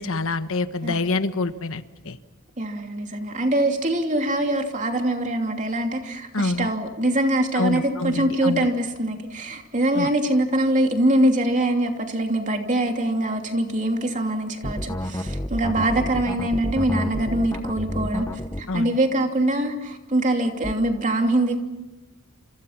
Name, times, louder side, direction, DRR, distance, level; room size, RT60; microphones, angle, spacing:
voice 1, 0.0-2.2 6.3-6.7 7.5-8.7 9.9-10.1 18.7-19.0, left 3 dB, 70° left, 10 dB, 1.2 m, -26 dB
voice 2, 2.6-18.3 18.6-21.6, right 1 dB, 35° right, 4 dB, 2.9 m, -23 dB
sound 1, 14.6-18.6 20.6-20.7, left 1 dB, 15° left, 1.1 m, -29 dB
29.5 x 28.0 x 5.9 m, 1.1 s
head